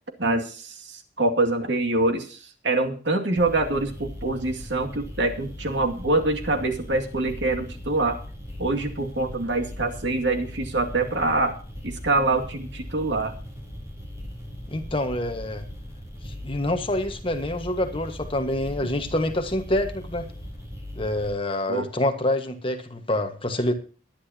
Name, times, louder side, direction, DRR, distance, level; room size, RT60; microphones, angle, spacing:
voice 1, 0.2-8.2 8.6-11.6 11.8-13.4 21.7-21.9, right 2 dB, 80° right, 2.3 m, -25 dB
sound 1, 3.4-21.3, equal, 15° right, 4.3 m, -39 dB
voice 2, 14.7-15.6 16.2-20.3 20.9-23.7, left 1 dB, 30° left, 1.5 m, -26 dB
21.0 x 10.5 x 2.9 m
head